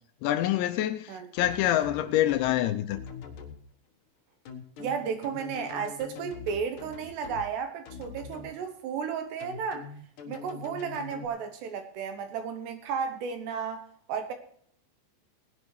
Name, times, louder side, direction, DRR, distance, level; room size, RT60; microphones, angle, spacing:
voice 1, 0.2-3.0, left 13 dB, 80° left, 2.7 m, -26 dB
sound 1, 1.4-2.5 2.9-3.6 4.5-7.5 7.9-8.5 9.4-11.3, left 5 dB, 65° left, 2.2 m, -43 dB
voice 2, 4.8-9.9 10.3-13.8 14.1-14.3, right 6 dB, 70° right, 2.9 m, -33 dB
20.0 x 11.0 x 3.2 m
omnidirectional pair, 5.6 m